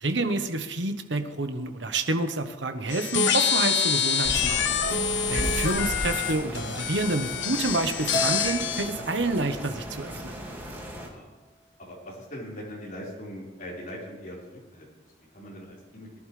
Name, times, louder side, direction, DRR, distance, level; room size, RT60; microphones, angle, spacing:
voice 1, 0.0-4.7 5.3-10.4, right 2 dB, 70° right, 7 dB, 1.2 m, -28 dB
sound 1, 2.9-8.9, left 7 dB, 75° left, 1.0 m, -26 dB
sound 2, 4.2-11.1, equal, 10° right, 2.2 m, -36 dB
Keyboard (musical), 8.1-10.5, right 1 dB, 20° left, 1.0 m, -35 dB
voice 2, 10.9-11.4 11.8-14.9 15.3-16.1, equal, 45° left, -5 dB, 4.8 m, -41 dB
22.5 x 11.0 x 3.4 m, 1.1 s
head